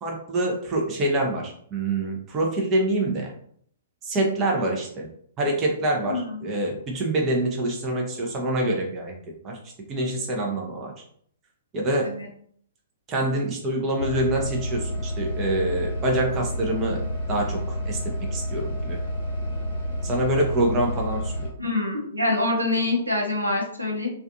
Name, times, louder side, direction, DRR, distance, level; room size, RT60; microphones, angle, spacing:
voice 1, 0.0-3.3 4.0-5.1 5.4-9.1 9.4-9.6 9.9-10.9 11.7-12.1 13.1-17.0 17.3-19.0 20.0-21.5, right 1 dB, 25° right, 0 dB, 0.7 m, -26 dB
sound 1, 14.0-21.5, equal, 70° right, 1.3 m, -29 dB
voice 2, 21.6-24.1, left 2 dB, 90° right, 0 dB, 0.7 m, -25 dB
2.4 x 2.4 x 2.6 m, 0.62 s
figure-of-eight pair, 115°, 0 cm